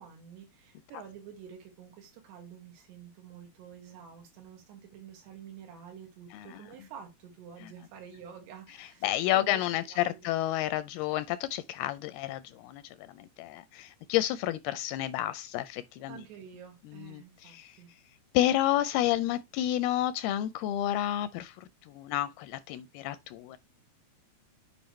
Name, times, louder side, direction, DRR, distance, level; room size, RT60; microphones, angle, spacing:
voice 1, 0.0-9.1 9.3-9.6 9.9-10.3 16.1-17.9, right 8 dB, 85° right, 4.0 m, -49 dB
voice 2, 6.3-6.6 8.8-12.8 13.2-16.2 16.9-17.8 18.3-23.6, left 13 dB, 85° left, 2.2 m, -30 dB
8.6 x 5.2 x 3.1 m
omnidirectional pair, 4.7 m